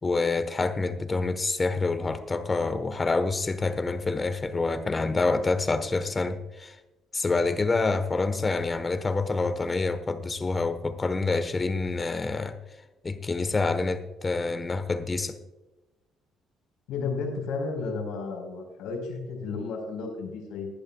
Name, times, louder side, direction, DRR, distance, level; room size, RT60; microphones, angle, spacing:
voice 1, 0.0-6.8 7.1-12.6 13.0-15.4, left 3 dB, 20° left, 10 dB, 1.2 m, -27 dB
voice 2, 16.9-20.7, left 4 dB, 90° left, 2 dB, 4.4 m, -33 dB
20.0 x 11.0 x 2.3 m, 1.0 s
cardioid pair, 130°, 0 cm